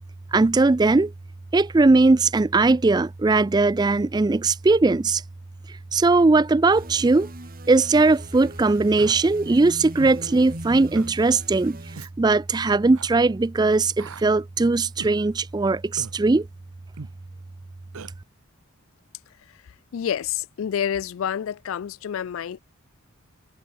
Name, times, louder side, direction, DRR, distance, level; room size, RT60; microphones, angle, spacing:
voice 1, 0.3-1.1 1.5-5.2 5.9-7.3 7.7-11.8 12.2-16.5, right 3 dB, 20° right, 0.3 m, -19 dB
sound 1, 6.7-12.1, right 1 dB, 40° right, 4.3 m, -40 dB
Human voice, 9.0-9.2 10.0-10.2 10.9-11.1 11.9-12.1 12.9-13.1 14.0-14.3 15.0-15.2 16.0-16.2 17.0-17.2 17.9-18.1, right 4 dB, 85° right, 0.8 m, -39 dB
voice 2, 19.9-22.6, left 9 dB, 70° left, 0.3 m, -28 dB
head